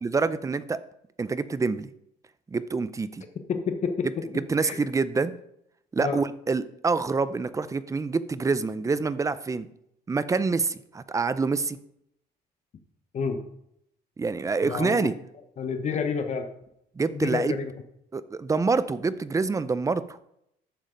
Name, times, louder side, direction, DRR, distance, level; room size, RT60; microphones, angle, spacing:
voice 1, 0.0-0.8 1.2-1.9 2.5-3.2 4.5-5.3 5.9-9.7 10.1-11.8 14.2-15.1 17.0-17.5 18.1-20.2, right 4 dB, 20° right, 15 dB, 0.5 m, -26 dB
voice 2, 3.5-4.8 6.0-6.2 13.1-13.4 14.6-15.1 15.6-16.5 17.1-17.7, left 5 dB, 45° left, 7 dB, 1.0 m, -29 dB
11.5 x 7.2 x 3.9 m, 0.77 s
cardioid pair, 110°, 17 cm